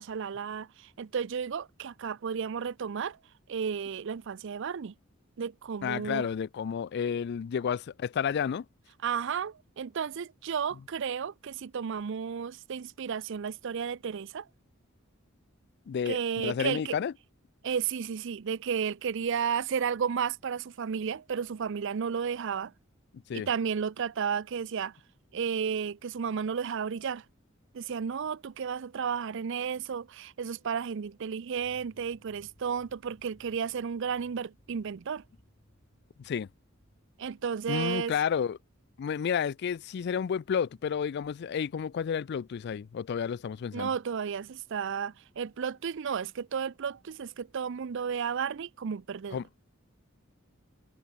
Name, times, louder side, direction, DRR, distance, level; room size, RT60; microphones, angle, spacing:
voice 1, 0.0-3.2 3.5-4.9 5.4-6.3 9.0-14.5 16.1-17.0 17.6-22.7 23.3-24.9 25.3-27.2 27.7-35.2 37.2-38.1 43.7-49.4, right 7 dB, 65° right, 0.5 m, -33 dB
voice 2, 5.8-8.6 15.9-17.1 23.3-23.5 36.2-36.5 37.7-38.6 39.0-43.9 49.3-49.4, left 7 dB, 55° left, 0.3 m, -31 dB
sound 1, 31.6-46.4, equal, 30° left, 5.0 m, -66 dB
head